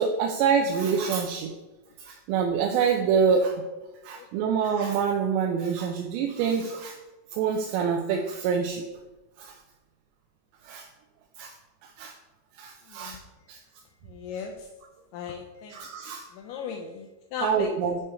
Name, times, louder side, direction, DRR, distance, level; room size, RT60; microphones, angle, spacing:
voice 1, 0.0-1.5 2.0-3.5 4.0-7.0 7.3-8.8 9.4-9.5 10.7-10.9 11.4-11.5 12.0-12.1 12.6-13.2 13.5-13.6 15.7-16.2 17.4-18.0, right 6 dB, 85° right, 1 dB, 2.8 m, -26 dB
voice 2, 14.1-14.7 15.1-15.8 16.3-17.7, left 7 dB, 85° left, 3 dB, 2.2 m, -37 dB
9.8 x 3.4 x 4.3 m, 1.1 s
omnidirectional pair, 5.0 m